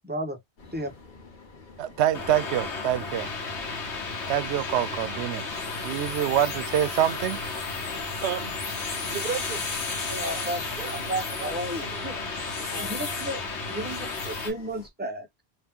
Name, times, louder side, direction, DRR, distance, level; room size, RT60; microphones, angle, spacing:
voice 1, 0.0-0.4 0.7-0.9 10.1-10.6 11.1-12.2 12.8-13.4 13.7-15.3, right 1 dB, 10° right, 0.6 m, -33 dB
sound 1, 0.6-14.9, left 3 dB, 50° left, 1.0 m, -49 dB
voice 2, 1.8-3.3 4.3-5.4 5.8-7.4, right 11 dB, 80° right, 0.9 m, -26 dB
sound 2, 2.1-14.5, left 4 dB, 85° left, 1.3 m, -33 dB
voice 3, 8.2-8.6 8.9-12.3 12.7-13.0, right 7 dB, 55° right, 0.9 m, -37 dB
2.9 x 2.7 x 3.5 m
omnidirectional pair, 1.1 m